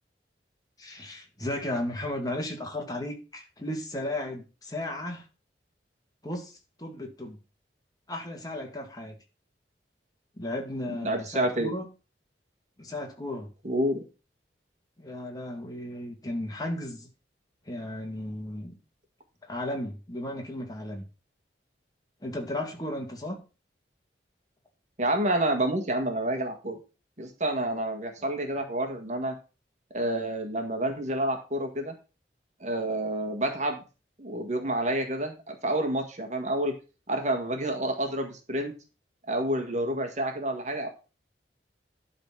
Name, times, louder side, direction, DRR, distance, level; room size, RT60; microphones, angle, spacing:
voice 1, 0.8-5.2 6.2-7.4 8.1-9.2 10.4-11.9 12.8-13.5 15.0-17.1 17.7-18.8 19.4-21.0 22.2-23.4 28.2-28.3, left 1 dB, 20° left, 2 dB, 2.2 m, -35 dB
voice 2, 11.0-11.7 13.6-14.0 25.0-26.8 27.2-29.4 29.9-31.9 32.6-33.8 34.2-36.7 37.1-38.7 39.3-40.9, right 1 dB, 40° right, 5 dB, 1.8 m, -29 dB
11.5 x 4.2 x 6.1 m, 0.32 s
head